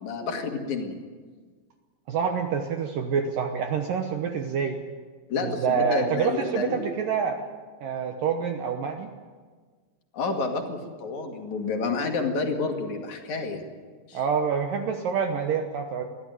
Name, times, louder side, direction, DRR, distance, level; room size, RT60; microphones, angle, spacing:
voice 1, 0.0-1.0 5.3-6.8 10.1-13.6 14.1-14.2, left 4 dB, 50° left, 3 dB, 2.9 m, -29 dB
voice 2, 2.1-4.8 5.4-7.4 7.8-9.1 14.1-16.0, right 6 dB, 70° right, 5 dB, 2.1 m, -27 dB
22.5 x 14.5 x 9.2 m, 1.5 s
omnidirectional pair, 5.3 m